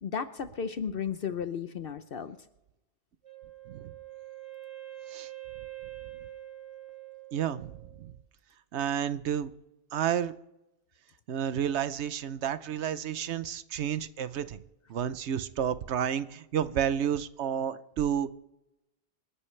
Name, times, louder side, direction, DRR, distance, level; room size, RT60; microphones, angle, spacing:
voice 1, 0.0-2.4, left 7 dB, 60° left, 10 dB, 0.9 m, -34 dB
Wind instrument woodwind instrument, 3.2-8.1, right 15 dB, 30° right, 2.1 m, -45 dB
voice 2, 7.3-7.7 8.0-8.1 8.7-9.5 9.9-10.3 11.3-14.6 14.9-18.3, right 9 dB, 85° right, 14 dB, 1.0 m, -31 dB
28.0 x 11.5 x 3.3 m, 0.93 s
omnidirectional pair, 1.1 m